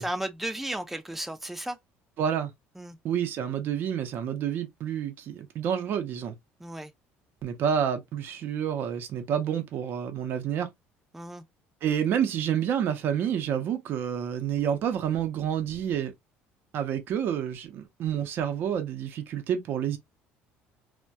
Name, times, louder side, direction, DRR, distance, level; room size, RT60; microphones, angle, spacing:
voice 1, 0.0-1.8 2.8-3.0 6.6-6.9 11.1-11.4, right 1 dB, 5° right, 0.4 m, -34 dB
voice 2, 2.2-2.5 3.0-6.3 7.4-10.7 11.8-16.1 16.7-20.0, right 9 dB, 50° right, 0.6 m, -29 dB
2.2 x 2.1 x 2.6 m
cardioid pair, 135°, 4 cm